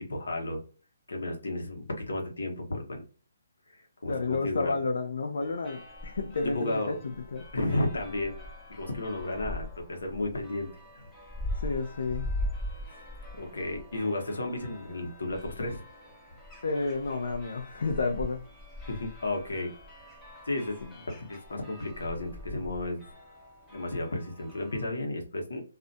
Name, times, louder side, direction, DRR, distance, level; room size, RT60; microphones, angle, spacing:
voice 1, 0.1-0.6 1.1-3.0 3.7-4.7 6.4-7.0 7.5-8.4 8.7-10.7 10.9-11.0 12.9-13.0 13.4-15.8 18.9-20.1 20.5-20.8 21.1-23.0 23.7-25.6, left 2 dB, 90° left, 0.9 m, -33 dB
voice 2, 4.1-7.5 11.5-12.3 16.6-18.4, left 3 dB, 70° left, 0.4 m, -31 dB
sound 1, 5.4-24.9, left 1 dB, 10° left, 0.5 m, -42 dB
2.4 x 2.1 x 2.6 m
hypercardioid pair, 160°, 0 cm